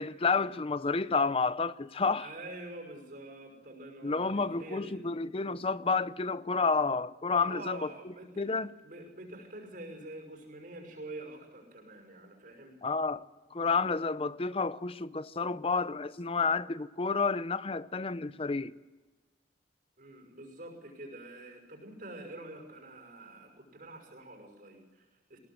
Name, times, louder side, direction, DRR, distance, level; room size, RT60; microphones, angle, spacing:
voice 1, 0.0-2.3 4.0-7.9 8.4-8.7 12.8-13.2 13.5-18.7, left 4 dB, 35° left, 0.6 m, -30 dB
voice 2, 2.2-5.0 7.4-8.5 8.8-12.8 20.0-25.4, right 2 dB, 50° right, 6.0 m, -46 dB
21.0 x 17.5 x 7.9 m
head